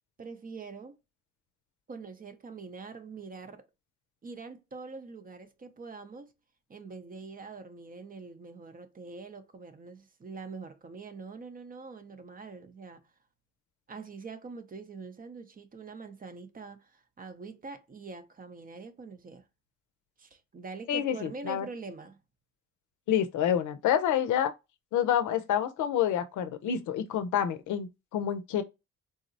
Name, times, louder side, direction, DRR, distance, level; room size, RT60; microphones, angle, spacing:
voice 1, 0.2-1.0 1.9-3.7 4.2-6.3 6.7-13.1 13.9-19.4 20.2-22.2 27.1-27.2, right 4 dB, 30° right, 0.5 m, -44 dB
voice 2, 20.9-21.7 23.1-24.5 24.9-28.6, left 9 dB, 75° left, 0.6 m, -28 dB
3.7 x 2.0 x 2.5 m
cardioid pair, 90°, 30 cm